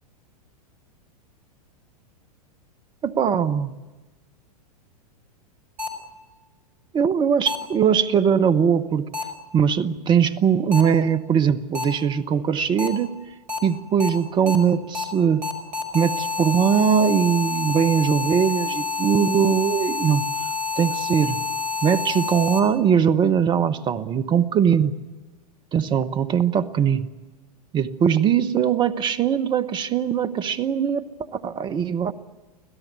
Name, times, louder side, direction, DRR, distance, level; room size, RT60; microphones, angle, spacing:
voice 1, 3.0-3.7 6.9-9.1 9.5-13.1 13.6-15.4 15.9-20.2 20.8-21.4 21.8-24.9 25.7-27.1 27.7-32.1, right 7 dB, 20° right, 12 dB, 1.0 m, -21 dB
sound 1, 5.8-5.9 7.5-7.6 9.1-9.2 10.7-10.8 11.7-11.8 12.8-12.9 13.5-13.6 14.0-14.1 14.5-14.6 14.9-15.0 15.4-22.6, left 5 dB, 40° right, 5.1 m, -28 dB
25.0 x 16.5 x 9.5 m, 1.2 s
figure-of-eight pair, 100°, 21 cm